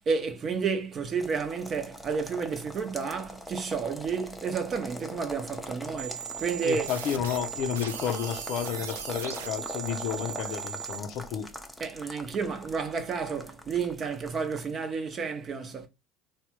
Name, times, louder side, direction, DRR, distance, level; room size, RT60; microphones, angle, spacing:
voice 1, 0.1-6.9 11.8-15.9, right 5 dB, 40° right, 0.7 m, -31 dB
sound 1, 1.2-14.7, equal, 5° left, 0.6 m, -42 dB
sound 2, 6.0-11.0, right 9 dB, 80° right, 0.3 m, -38 dB
voice 2, 6.6-11.5, left 8 dB, 55° left, 0.5 m, -31 dB
3.3 x 2.2 x 2.9 m
hypercardioid pair, 65°, 0 cm